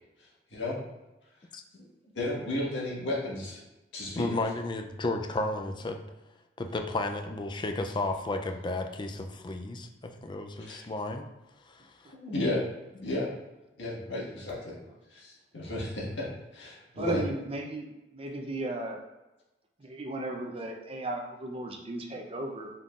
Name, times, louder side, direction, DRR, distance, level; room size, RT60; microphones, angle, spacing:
voice 1, 2.1-3.6 3.9-4.3 10.7-10.8 12.1-12.6 12.9-13.3 13.8-14.8 15.1-17.2, left 1 dB, 75° left, -5 dB, 1.6 m, -33 dB
voice 2, 4.2-6.0 6.6-11.3 11.7-12.1, left 2 dB, 25° left, 5 dB, 0.4 m, -33 dB
voice 3, 17.0-17.9 18.1-19.0 19.8-22.7, right 2 dB, 30° right, 3 dB, 0.6 m, -35 dB
5.5 x 3.7 x 2.4 m, 1.0 s
head